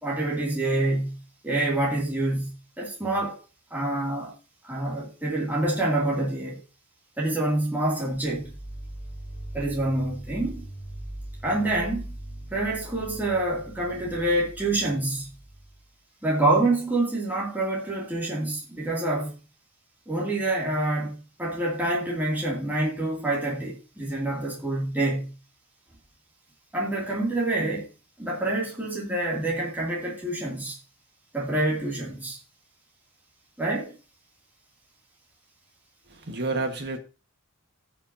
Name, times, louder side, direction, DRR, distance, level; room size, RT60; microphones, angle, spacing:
voice 1, 0.0-3.4 3.7-4.3 4.6-6.6 7.2-8.5 9.5-10.7 11.4-12.2 12.5-15.3 16.2-19.3 20.1-21.1 21.4-25.3 26.7-27.9 28.2-30.8 31.3-32.4 33.6-33.9, right 2 dB, 10° right, 2.5 m, -27 dB
sound 1, 8.1-15.8, right 1 dB, 10° left, 6.0 m, -41 dB
voice 2, 36.1-37.0, right 3 dB, 50° right, 1.5 m, -29 dB
17.0 x 5.7 x 2.7 m
head